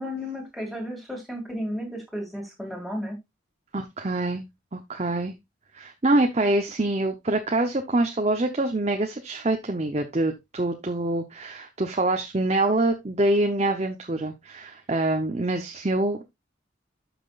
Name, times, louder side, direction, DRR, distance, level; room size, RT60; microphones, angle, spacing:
voice 1, 0.0-3.2, equal, ahead, -1 dB, 2.4 m, -33 dB
voice 2, 3.7-4.4 4.7-5.3 5.7-16.2, right 2 dB, 35° right, 5 dB, 0.8 m, -25 dB
12.0 x 6.0 x 2.5 m, 0.21 s
head